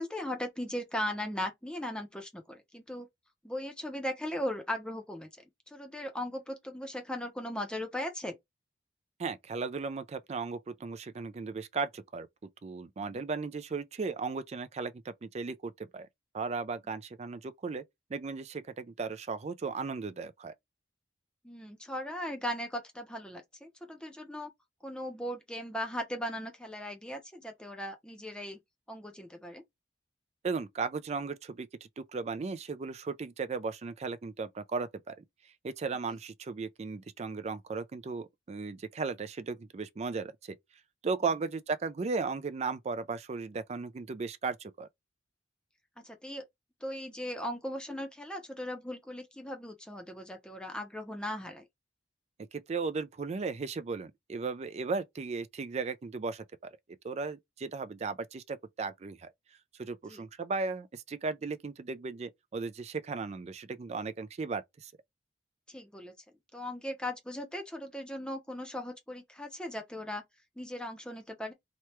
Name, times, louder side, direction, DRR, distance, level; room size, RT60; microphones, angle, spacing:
voice 1, 0.0-3.1 3.4-5.3 5.7-8.4 13.1-13.2 21.4-24.5 24.8-28.6 28.9-29.6 46.0-46.4 46.8-51.7 60.1-60.2 65.7-66.1 66.5-70.2 70.6-71.5, left 1 dB, 5° left, 0.7 m, -38 dB
voice 2, 9.2-12.3 12.6-16.1 16.3-17.8 18.1-20.5 30.4-35.2 35.6-40.6 41.0-44.9 52.5-56.4 57.0-59.3 59.8-64.9, right 4 dB, 35° right, 0.4 m, -36 dB
2.9 x 2.2 x 3.1 m
head